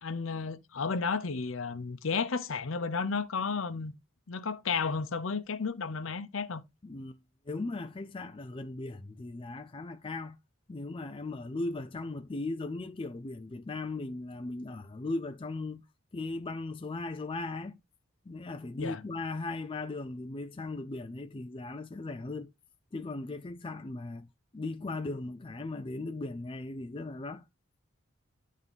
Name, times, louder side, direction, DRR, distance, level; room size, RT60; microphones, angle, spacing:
voice 1, 0.0-3.9 4.3-6.6 18.8-19.0, left 5 dB, 70° left, 0.7 m, -32 dB
voice 2, 6.8-7.2 7.5-10.4 10.7-15.8 16.1-17.8 18.3-22.5 22.9-24.3 24.5-27.4, left 2 dB, 25° left, 0.4 m, -38 dB
11.0 x 3.6 x 3.9 m
head